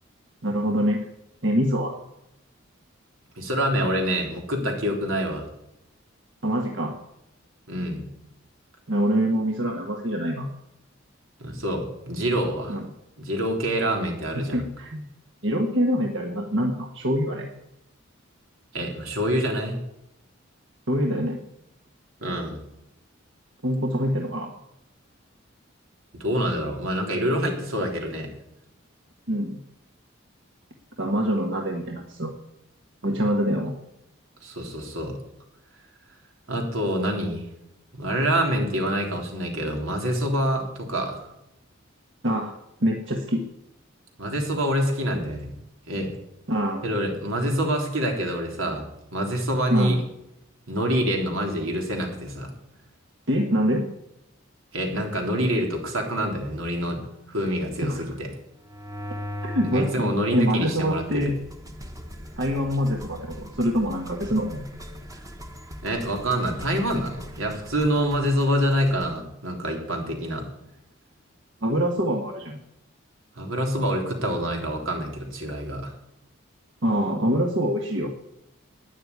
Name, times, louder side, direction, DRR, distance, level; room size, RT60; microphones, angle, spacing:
voice 1, 0.4-1.0 1.4-2.0 6.4-6.9 8.9-10.5 12.7-12.9 14.5-15.1 15.4-17.5 20.9-21.4 23.6-24.5 29.3-29.6 31.0-32.3 33.0-33.7 42.2-42.5 42.8-43.4 46.5-46.8 49.7-50.0 53.3-53.9 57.8-58.0 59.4-61.4 62.4-64.7 71.6-72.6 76.8-78.1, equal, 60° right, 1 dB, 1.6 m, -25 dB
voice 2, 3.4-5.5 7.7-8.0 11.4-12.8 13.2-14.6 18.7-19.8 22.2-22.6 26.2-28.3 34.4-35.2 36.5-37.5 37.9-41.3 44.2-45.5 45.9-46.1 46.8-48.9 49.1-50.0 50.7-52.5 54.7-57.0 57.3-58.3 59.7-61.3 65.8-70.5 73.4-76.0, equal, 85° right, 2 dB, 3.6 m, -26 dB
sound 1, 58.6-60.0 60.6-69.2, equal, 15° right, 1.3 m, -40 dB
12.5 x 9.8 x 9.6 m, 0.86 s
head